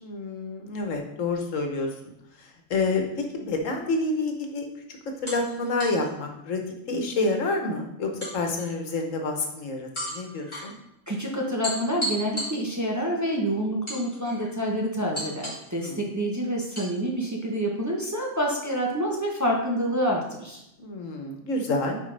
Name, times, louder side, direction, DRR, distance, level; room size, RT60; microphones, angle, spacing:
voice 1, 0.0-2.1 2.4-4.7 5.2-6.6 6.9-10.7 15.8-16.0 20.8-22.0, left 3 dB, 85° left, 3 dB, 1.4 m, -28 dB
sound 1, 4.0-4.2 5.3-6.1 8.2-9.0 9.9-10.7 11.6-13.0 13.9-14.5 15.1-15.7 16.7-16.9, equal, 20° left, 2.8 m, -35 dB
voice 2, 11.1-20.6, equal, 15° right, -2 dB, 0.8 m, -27 dB
8.9 x 4.3 x 3.3 m, 0.86 s
omnidirectional pair, 1.3 m